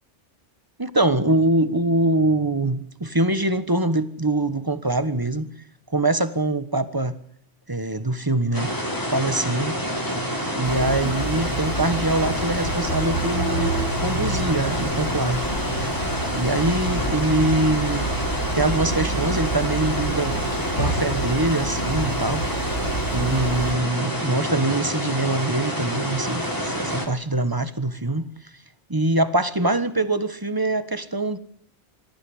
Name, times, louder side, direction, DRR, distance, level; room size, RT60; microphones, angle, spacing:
voice 1, 0.8-5.5 5.9-7.1 7.7-8.7 9.0-9.8 10.5-13.8 14.0-15.4 15.8-15.9 16.3-18.1 18.5-20.4 20.8-22.4 23.1-28.2 28.9-31.4, right 2 dB, 20° right, 1.3 m, -23 dB
sound 1, 8.5-27.1, equal, 15° left, 4.2 m, -28 dB
sound 2, 10.6-23.7, right 2 dB, 80° left, 6.3 m, -29 dB
26.0 x 15.0 x 10.0 m
omnidirectional pair, 1.2 m